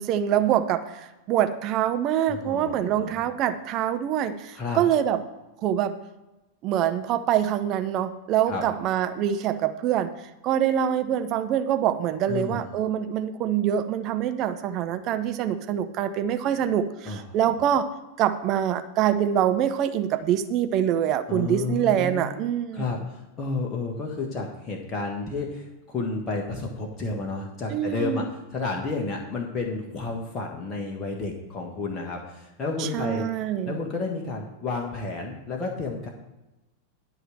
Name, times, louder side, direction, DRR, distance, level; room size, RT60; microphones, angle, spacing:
voice 1, 0.0-5.2 5.6-5.9 6.6-10.1 10.4-17.9 18.2-22.9 27.7-28.3 32.8-33.8, right 10 dB, 35° right, 9 dB, 0.7 m, -25 dB
voice 2, 2.3-3.2 4.5-4.8 8.5-8.6 12.3-12.6 17.0-17.4 21.3-22.3 22.7-28.2 28.5-33.3 33.6-36.1, left 3 dB, 25° left, 0 dB, 1.6 m, -31 dB
11.5 x 4.8 x 7.6 m, 1.0 s
figure-of-eight pair, 90°, 0 cm